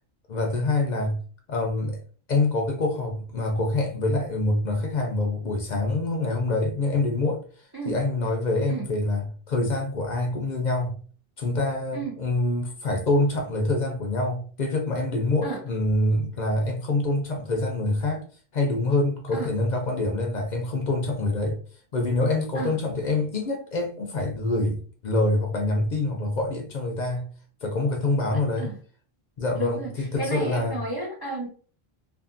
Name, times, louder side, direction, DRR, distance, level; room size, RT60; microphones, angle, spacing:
voice 1, 0.3-1.2 1.5-2.0 2.3-11.0 11.4-18.2 18.5-21.6 21.9-27.3 27.6-28.7 29.4-30.8, left 2 dB, 55° left, 0.6 m, -26 dB
voice 2, 28.3-28.8 29.6-31.5, right 2 dB, 35° right, 0.4 m, -32 dB
2.5 x 2.5 x 2.4 m
omnidirectional pair, 1.0 m